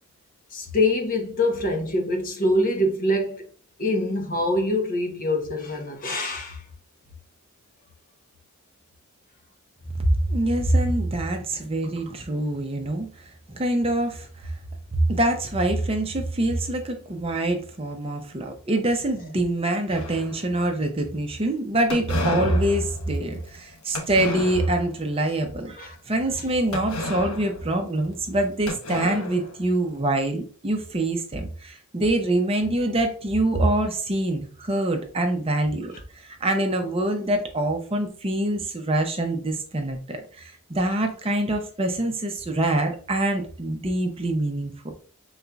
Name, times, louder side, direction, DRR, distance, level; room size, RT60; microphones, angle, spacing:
voice 1, 0.5-3.4 3.8-6.6 25.7-26.0, left 1 dB, 40° left, 0.9 m, -24 dB
voice 2, 10.0-13.1 13.5-14.3 14.9-35.9 36.2-44.9, right 1 dB, 25° right, 0.6 m, -25 dB
sound 1, 19.9-20.7 21.9-25.0 25.4-25.7 26.7-28.4 28.7-30.0, left 2 dB, 75° left, 0.9 m, -33 dB
5.3 x 4.0 x 2.3 m
head